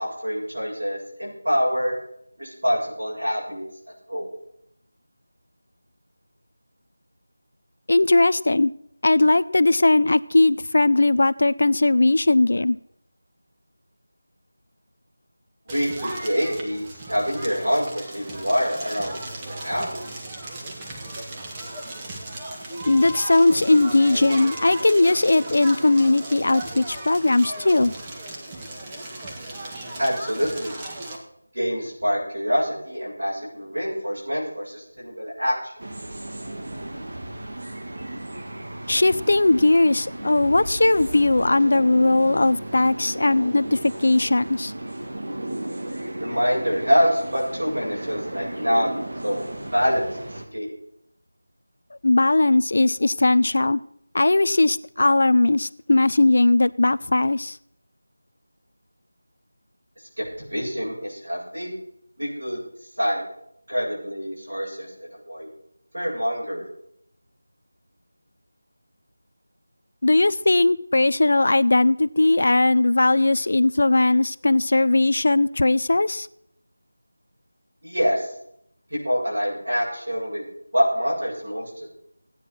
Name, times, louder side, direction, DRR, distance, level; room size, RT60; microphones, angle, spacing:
voice 1, 0.0-2.0 2.4-3.6 4.1-4.3 15.7-19.1 19.5-20.1 30.0-30.7 31.5-35.7 46.2-50.7 60.2-61.7 62.2-62.6 63.0-63.2 63.7-65.5 65.9-66.7 77.8-78.3 78.9-80.4 80.7-81.9, equal, 90° right, -5 dB, 8.0 m, -26 dB
voice 2, 7.9-8.7 9.0-12.8 22.8-27.9 38.9-44.7 52.0-53.8 54.1-57.6 70.0-76.3, left 2 dB, 55° left, 16 dB, 0.5 m, -19 dB
Crackle, 15.7-31.2, right 1 dB, 15° right, 1.6 m, -36 dB
sound 1, 35.8-50.5, right 1 dB, 60° right, 2.3 m, -35 dB
16.5 x 9.6 x 6.1 m, 0.73 s
figure-of-eight pair, 170°, 0 cm